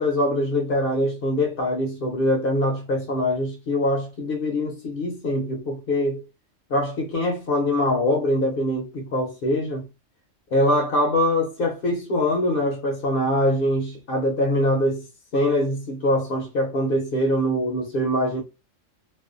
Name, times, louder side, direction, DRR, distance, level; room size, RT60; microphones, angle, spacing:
voice 1, 0.0-6.2 6.7-9.9 10.5-15.1 15.3-18.4, left 1 dB, 60° left, 0.6 m, -23 dB
2.4 x 2.1 x 2.4 m
omnidirectional pair, 1.4 m